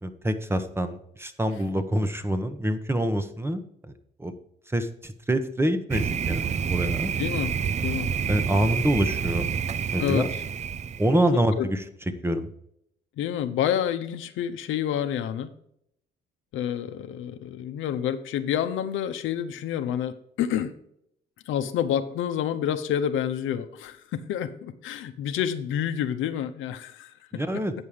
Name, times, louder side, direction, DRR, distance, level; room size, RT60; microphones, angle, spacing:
voice 1, 0.0-3.6 4.2-4.3 4.7-7.1 8.3-9.5 9.9-10.3 11.0-11.8 12.2-12.5 27.3-27.7, right 1 dB, 10° right, 9 dB, 1.0 m, -26 dB
Thunder, 5.9-11.2, right 7 dB, 35° right, 0.4 m, -28 dB
voice 2, 7.2-7.5 7.8-8.1 10.0-10.2 11.5-11.7 13.2-15.5 16.5-20.7 21.5-27.4, left 9 dB, 85° left, 9 dB, 0.7 m, -28 dB
8.9 x 5.5 x 4.9 m, 0.73 s
cardioid pair, 90°, 20 cm